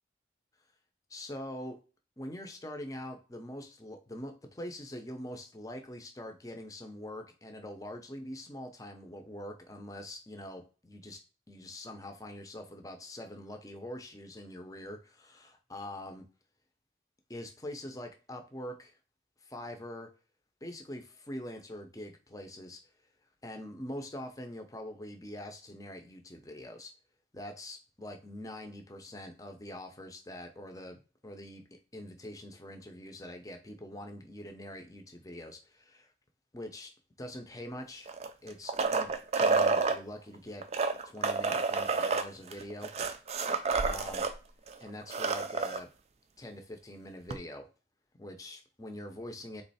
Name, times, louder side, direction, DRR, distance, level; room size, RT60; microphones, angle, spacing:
voice 1, 1.1-1.8 2.2-11.2 11.5-16.3 17.3-18.9 19.4-20.1 20.6-22.8 23.4-26.9 27.3-31.6 31.9-36.1 36.5-36.9 37.2-38.1 38.4-40.6 41.0-42.9 43.8-44.3 44.8-45.9 46.4-47.7 48.2-49.6, left 1 dB, 20° left, 5 dB, 0.6 m, -44 dB
sound 1, 38.1-40.0 40.6-44.3 44.7-44.8 45.0-45.8 47.3-47.4, right 4 dB, 35° right, 0.4 m, -29 dB
3.8 x 3.1 x 4.1 m, 0.35 s
head